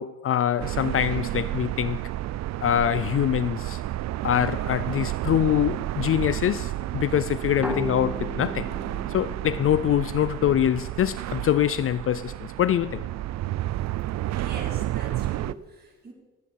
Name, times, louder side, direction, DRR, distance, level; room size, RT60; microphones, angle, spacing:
voice 1, 0.0-2.0 2.6-3.8 4.2-8.7 9.1-13.0, left 10 dB, 45° left, 0.4 m, -24 dB
sound 1, 0.6-15.5, right 15 dB, 65° right, 0.5 m, -31 dB
sound 2, 7.6-11.1, equal, 5° right, 1.6 m, -37 dB
voice 2, 14.3-16.1, right 2 dB, 30° right, 4.7 m, -42 dB
23.0 x 8.9 x 4.6 m
cardioid pair, 90°, 30 cm